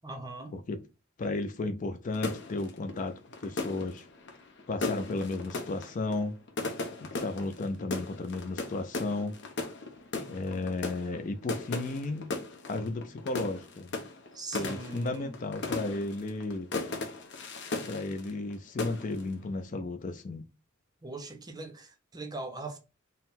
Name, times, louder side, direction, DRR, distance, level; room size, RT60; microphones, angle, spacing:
voice 1, 0.0-0.6 14.3-15.4 21.0-22.8, right 2 dB, 20° right, 0.6 m, -40 dB
voice 2, 1.2-4.1 4.7-6.4 7.0-9.4 10.3-12.3 12.7-13.9 14.5-16.7 17.9-20.5, left 2 dB, 40° left, 0.4 m, -34 dB
sound 1, 2.1-18.5 18.8-19.3, left 3 dB, 55° left, 0.7 m, -37 dB
3.9 x 2.1 x 4.0 m
head